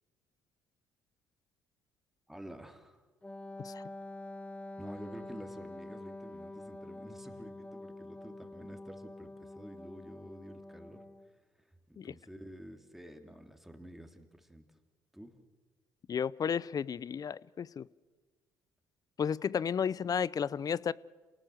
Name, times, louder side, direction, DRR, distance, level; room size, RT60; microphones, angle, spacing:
voice 1, 2.3-3.0 4.8-11.0 11.6-14.7 15.1-15.3, equal, 5° right, 3.2 m, -50 dB
Wind instrument woodwind instrument, 3.2-11.3, left 2 dB, 15° left, 1.3 m, -46 dB
voice 2, 16.1-17.9 19.2-20.9, left 7 dB, 40° left, 0.6 m, -33 dB
27.5 x 18.5 x 7.9 m
hypercardioid pair, 55°, 9 cm